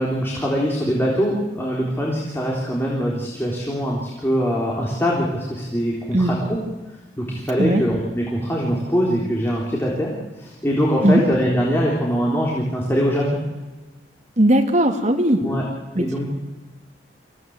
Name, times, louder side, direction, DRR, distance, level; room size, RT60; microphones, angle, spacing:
voice 1, 0.0-6.4 7.2-10.1 10.4-13.4 15.4-15.6 16.0-16.3, equal, 15° left, -3 dB, 3.6 m, -22 dB
voice 2, 14.4-15.4 15.9-16.0, right 1 dB, 40° right, 3 dB, 2.6 m, -17 dB
25.5 x 16.5 x 8.1 m, 1.2 s
head